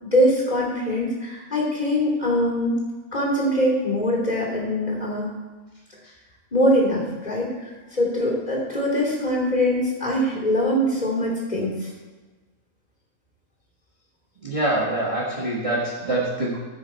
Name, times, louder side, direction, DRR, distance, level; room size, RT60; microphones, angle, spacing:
voice 1, 0.0-2.8 3.1-5.3 6.5-7.5 7.9-11.9, equal, 30° left, -3 dB, 2.9 m, -22 dB
voice 2, 14.4-16.6, right 1 dB, 20° right, -5 dB, 1.6 m, -25 dB
14.0 x 6.3 x 4.4 m, 1.3 s
omnidirectional pair, 1.6 m